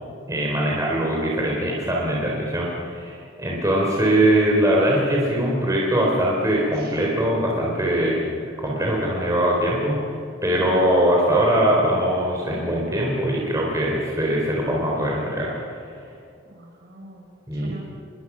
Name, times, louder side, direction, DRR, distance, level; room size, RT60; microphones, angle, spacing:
voice 1, 0.3-8.3 8.6-10.0 10.4-15.5 17.5-17.7, right 1 dB, 15° right, -3 dB, 3.8 m, -21 dB
voice 2, 10.6-11.0 16.4-17.9, right 1 dB, 50° right, 0 dB, 5.9 m, -43 dB
28.5 x 21.0 x 6.3 m, 2.3 s
head